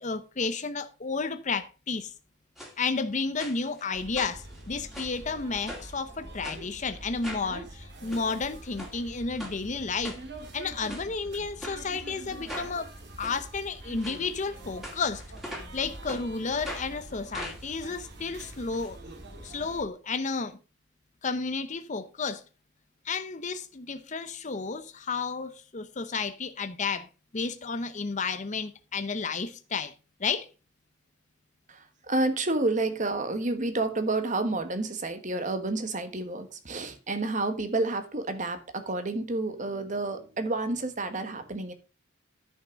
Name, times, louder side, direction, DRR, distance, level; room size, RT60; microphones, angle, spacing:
voice 1, 0.0-2.1 2.8-10.2 10.5-12.9 13.2-15.2 15.7-19.0 19.4-20.6 21.2-22.4 23.0-27.1 27.3-29.9 30.2-30.5, left 4 dB, 40° left, 0.7 m, -32 dB
sound 1, 2.6-2.7 3.4-3.8 4.1-5.2 5.7-6.0 6.4-6.6 7.2-7.5 7.9-8.2 8.8-8.9 9.4-9.6 10.0-10.5 10.9-11.1 11.6-11.8 12.5-12.7 13.2-13.3 14.0-14.2 14.8-15.8 16.1-16.2 16.6-16.9 17.3-18.9 19.2-19.3 19.5-19.6, equal, ahead, 2.6 m, -41 dB
sound 2, 3.9-19.8, right 2 dB, 55° right, 2.3 m, -45 dB
voice 2, 31.7-41.7, right 2 dB, 40° right, 1.3 m, -30 dB
9.9 x 5.8 x 5.1 m
head